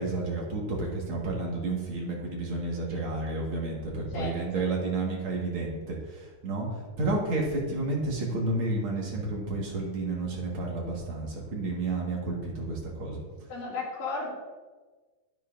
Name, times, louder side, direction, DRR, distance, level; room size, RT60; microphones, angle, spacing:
voice 1, 0.0-6.7 7.0-13.2, right 2 dB, 45° right, -2 dB, 2.3 m, -31 dB
voice 2, 4.1-4.7 13.5-14.3, left 3 dB, 75° left, -6 dB, 3.8 m, -35 dB
10.5 x 9.7 x 2.6 m, 1.3 s
omnidirectional pair, 3.7 m